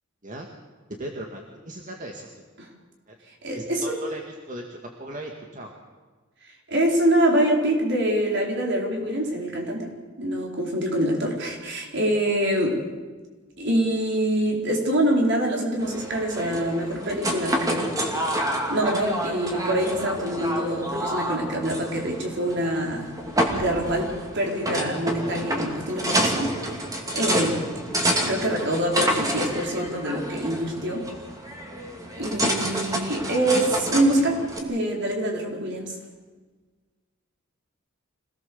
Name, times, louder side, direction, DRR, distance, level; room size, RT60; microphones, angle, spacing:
voice 1, 1.0-2.4 3.1-3.2 3.5-5.7, right 1 dB, 40° right, 1 dB, 2.1 m, -38 dB
voice 2, 3.4-4.0 6.7-9.9 10.2-12.8 13.6-17.9 18.7-23.1 23.5-26.8 27.1-27.6 28.3-31.1 32.2-35.9, right 1 dB, 60° right, 0 dB, 4.6 m, -25 dB
sound 1, 15.8-34.6, right 1 dB, 15° right, 3.0 m, -29 dB
26.0 x 18.5 x 7.2 m, 1.4 s
head